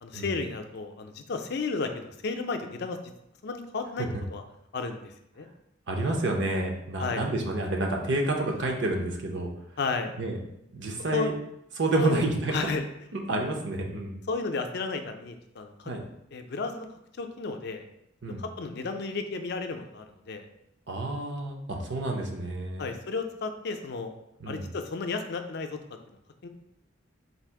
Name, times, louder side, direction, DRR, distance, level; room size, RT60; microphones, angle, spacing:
voice 1, 0.0-3.0 3.4-4.4 4.7-5.5 7.0-7.2 9.8-10.1 11.1-11.3 11.9-12.2 12.5-12.8 14.3-15.9 16.3-16.9 17.2-17.8 18.4-20.5 22.8-24.1 24.5-25.8 26.4-26.5, left 4 dB, 55° left, 6 dB, 0.5 m, -33 dB
voice 2, 5.9-9.5 10.2-10.4 10.7-11.3 11.8-12.7 13.1-14.2 15.8-16.0 18.2-18.4 20.9-22.9 24.4-24.6, right 2 dB, 60° right, 2 dB, 0.7 m, -29 dB
4.1 x 2.5 x 4.6 m, 0.80 s
head